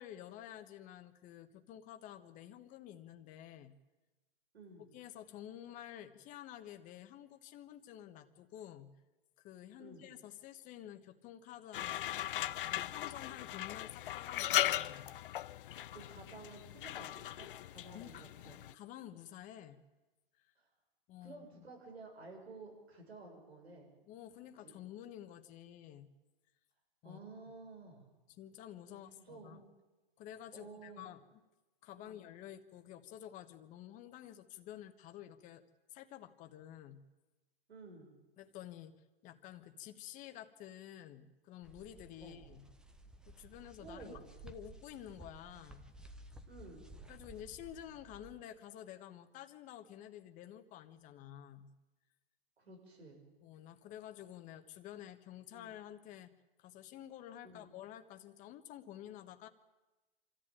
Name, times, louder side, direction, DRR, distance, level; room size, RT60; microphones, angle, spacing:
voice 1, 0.0-3.8 4.9-8.9 9.4-12.3 12.6-15.1 17.9-18.2 18.7-19.8 20.4-20.5 21.1-21.7 24.1-26.1 27.0-27.2 28.4-29.6 30.2-31.4 31.8-35.6 35.9-37.0 38.4-42.7 43.3-45.9 47.1-51.7 53.4-56.3 56.6-59.5, left 11 dB, 25° left, 8 dB, 1.3 m, -51 dB
voice 2, 4.5-4.9 9.8-10.1 15.7-18.6 20.6-20.7 21.2-23.9 24.4-24.8 27.0-28.0 28.9-29.7 30.5-31.1 31.9-32.3 37.7-38.1 42.2-42.4 43.8-44.3 46.5-46.9 52.6-53.2 55.5-55.7 57.4-57.7, right 3 dB, 90° right, 2 dB, 6.9 m, -53 dB
sound 1, 11.7-18.7, left 13 dB, 60° left, 0.7 m, -38 dB
sound 2, 41.6-48.4, right 2 dB, ahead, 0.7 m, -55 dB
25.0 x 14.0 x 9.0 m, 1.1 s
hypercardioid pair, 140°, 31 cm